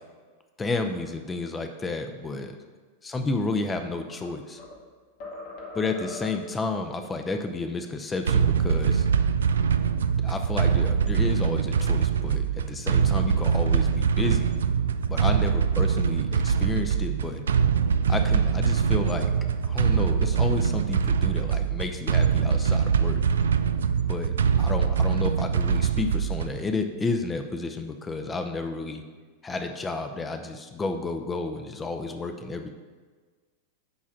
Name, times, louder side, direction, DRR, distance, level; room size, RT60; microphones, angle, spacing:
voice 1, 0.6-2.6 3.0-4.6 5.7-9.0 10.2-14.5 15.1-17.4 18.1-19.3 19.6-23.2 24.1-29.0 29.4-32.7, left 3 dB, 15° left, 6 dB, 0.7 m, -31 dB
sound 1, 3.8-4.9 5.2-6.6, left 2 dB, 45° left, 1.6 m, -41 dB
sound 2, 8.3-26.7, right 7 dB, 65° right, 0.3 m, -23 dB
9.5 x 3.6 x 5.8 m, 1.4 s
figure-of-eight pair, 90°, 0 cm